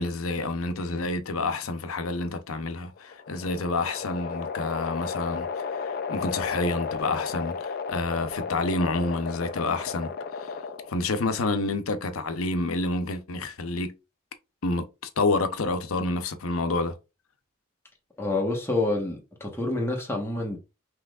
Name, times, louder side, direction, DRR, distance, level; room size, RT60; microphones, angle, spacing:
voice 1, 0.0-10.1 10.4-10.5 10.9-13.9 14.6-17.0, left 2 dB, 85° left, 0.7 m, -28 dB
sound 1, 3.0-11.1, left 5 dB, 45° left, 0.4 m, -34 dB
voice 2, 18.2-20.6, left 2 dB, 10° left, 1.2 m, -28 dB
5.9 x 3.1 x 2.4 m
head